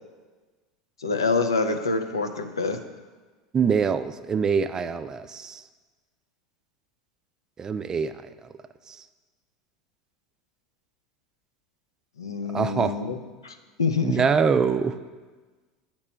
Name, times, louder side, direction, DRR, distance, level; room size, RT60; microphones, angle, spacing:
voice 1, 1.0-2.8 12.2-13.2 13.4-14.2, left 4 dB, 90° left, 7 dB, 0.4 m, -26 dB
voice 2, 3.5-5.6 7.6-8.1 8.4-8.5 8.9-9.0 12.5-13.0 14.0-15.0, right 6 dB, 25° right, 11 dB, 0.3 m, -24 dB
8.7 x 2.9 x 4.3 m, 1.3 s
hypercardioid pair, 80°, 2 cm